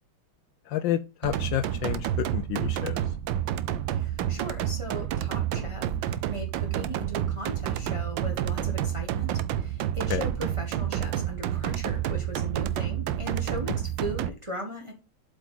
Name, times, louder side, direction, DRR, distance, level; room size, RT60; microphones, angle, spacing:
voice 1, 0.7-3.0 10.1-10.2, left 11 dB, 75° left, 12 dB, 1.2 m, -29 dB
sound 1, 1.2-14.3, right 11 dB, 75° right, 1.3 m, -29 dB
voice 2, 3.9-14.9, equal, 20° right, 1 dB, 1.2 m, -38 dB
7.8 x 5.2 x 4.0 m, 0.28 s
omnidirectional pair, 2.3 m